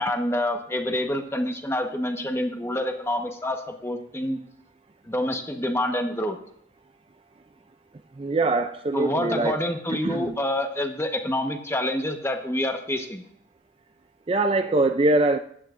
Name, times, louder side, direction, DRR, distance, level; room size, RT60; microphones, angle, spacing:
voice 1, 0.0-4.4 5.0-6.4 8.9-13.2, left 1 dB, 15° left, 1.1 m, -27 dB
voice 2, 8.2-9.6 9.9-10.4 14.3-15.4, right 2 dB, 30° right, 0.4 m, -23 dB
15.0 x 11.0 x 2.5 m
head